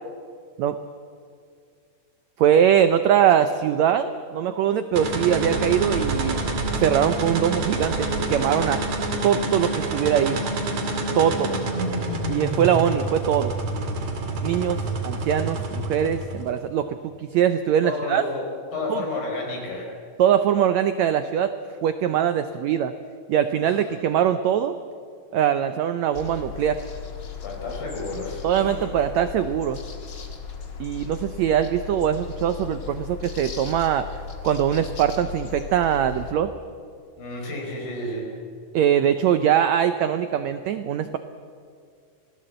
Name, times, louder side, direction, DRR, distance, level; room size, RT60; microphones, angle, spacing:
voice 1, 2.4-6.4 6.7-8.8 9.2-10.4 11.2-11.5 12.3-13.5 14.4-18.2 18.9-19.0 20.2-21.5 21.8-22.9 23.3-24.8 25.3-26.8 28.4-29.8 30.8-34.1 34.4-36.5 38.7-41.2, right 9 dB, 85° right, 10 dB, 1.5 m, -22 dB
sound 1, 4.9-16.6, right 2 dB, 55° right, 3.4 m, -27 dB
voice 2, 11.1-11.5 17.8-19.9 23.6-24.0 27.4-28.9 37.2-38.4, left 2 dB, 75° left, 0 dB, 6.7 m, -32 dB
sound 2, 26.1-36.3, left 6 dB, 40° left, 1.9 m, -37 dB
26.5 x 18.0 x 7.9 m, 2.3 s
omnidirectional pair, 4.1 m